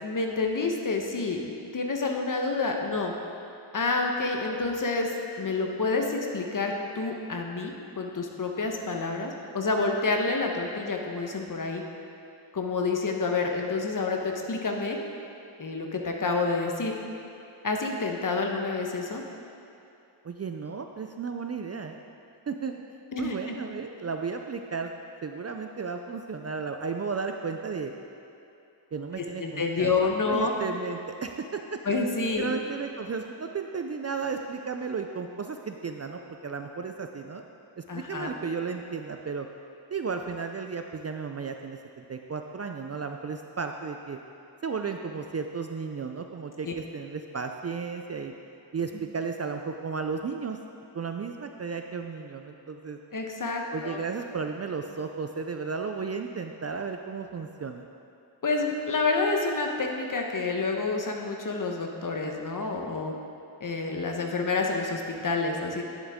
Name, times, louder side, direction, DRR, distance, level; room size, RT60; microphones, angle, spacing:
voice 1, 0.0-1.4 1.7-3.1 3.7-5.1 5.4-11.8 12.5-15.0 15.6-16.9 17.6-19.2 23.1-23.5 29.2-30.5 31.8-32.5 37.9-38.3 46.6-46.7 53.1-54.0 58.4-63.1 63.6-65.8, left 3 dB, 40° left, 2 dB, 1.0 m, -28 dB
voice 2, 20.2-22.0 22.5-22.8 23.2-24.9 25.2-27.9 28.9-29.9 30.3-31.8 32.4-37.4 37.8-39.5 39.9-44.2 44.6-48.3 48.7-50.6 50.9-53.0 53.7-57.9, right 5 dB, 35° right, 5 dB, 0.4 m, -34 dB
10.5 x 7.2 x 3.6 m, 2.7 s
cardioid pair, 70°, 47 cm